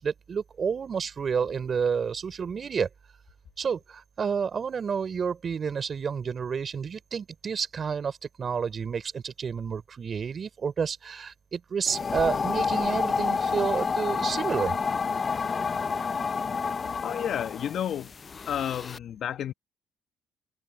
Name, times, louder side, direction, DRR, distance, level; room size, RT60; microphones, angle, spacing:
voice 1, 0.0-2.9 3.6-14.8, right 6 dB, 45° right, 4.2 m, -30 dB
sound 1, 11.9-19.0, left 5 dB, 35° left, 0.5 m, -29 dB
voice 2, 17.0-18.1 18.5-19.5, left 9 dB, 60° left, 1.1 m, -31 dB
supercardioid pair, 75°, 0 cm